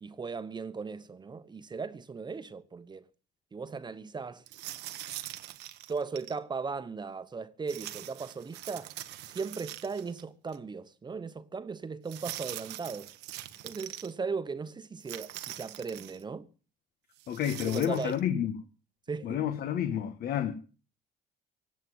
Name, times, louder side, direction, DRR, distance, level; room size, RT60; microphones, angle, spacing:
voice 1, 0.0-3.1 3.5-4.4 5.9-8.9 9.3-13.1 13.6-16.5 17.6-18.2 19.1-19.4, right 5 dB, 25° right, 1.1 m, -37 dB
sound 1, 4.5-6.4 7.7-10.2 10.5-10.6 12.1-14.1 15.0-16.2 17.2-18.2, right 15 dB, 85° right, 1.2 m, -43 dB
voice 2, 17.3-18.6 19.2-20.5, left 10 dB, 65° left, 1.6 m, -30 dB
17.5 x 7.8 x 9.4 m
cardioid pair, 110°, 17 cm